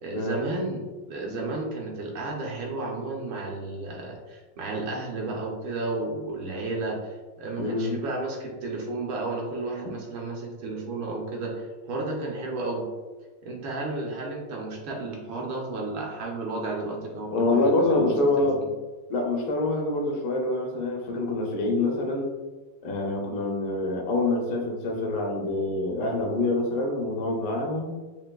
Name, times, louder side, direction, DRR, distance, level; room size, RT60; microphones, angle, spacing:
voice 1, 0.0-7.1 7.4-12.8 13.4-18.1 18.6-18.7, right 2 dB, 75° right, -1 dB, 1.5 m, -32 dB
voice 2, 7.6-8.0 17.3-18.6 19.1-22.3 22.8-27.9, left 2 dB, 75° left, 1 dB, 1.5 m, -26 dB
5.8 x 2.5 x 2.2 m, 1.2 s
omnidirectional pair, 2.3 m